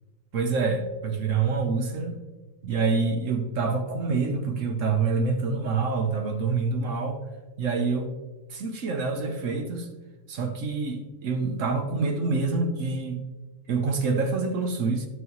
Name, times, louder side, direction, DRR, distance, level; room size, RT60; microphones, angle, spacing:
voice 1, 0.3-2.2 2.6-7.2 7.6-8.1 8.5-9.9 10.3-13.2 13.7-15.1, right 4 dB, 60° right, 6 dB, 1.1 m, -26 dB
10.5 x 6.3 x 3.1 m, 1.2 s
omnidirectional pair, 1.6 m